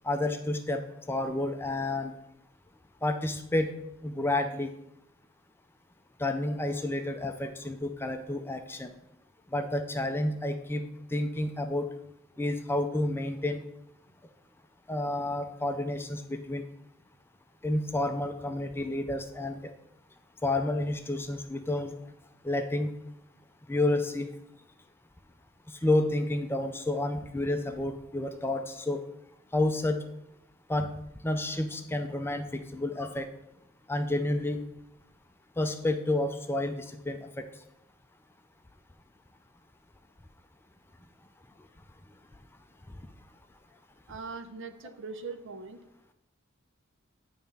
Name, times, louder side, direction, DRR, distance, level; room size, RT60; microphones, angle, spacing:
voice 1, 0.0-0.8 1.1-2.2 3.0-3.7 4.0-4.7 6.2-8.9 9.5-10.8 11.1-11.9 12.4-13.6 14.9-16.6 17.6-19.6 20.4-21.9 22.4-22.9 23.7-24.3 25.8-29.0 29.5-30.0 30.7-30.9 31.2-33.3 33.9-34.6 35.6-37.4, left 1 dB, 10° left, 6 dB, 0.4 m, -30 dB
voice 2, 44.1-45.8, right 4 dB, 60° right, 9 dB, 0.6 m, -41 dB
9.2 x 3.4 x 5.3 m, 0.83 s
head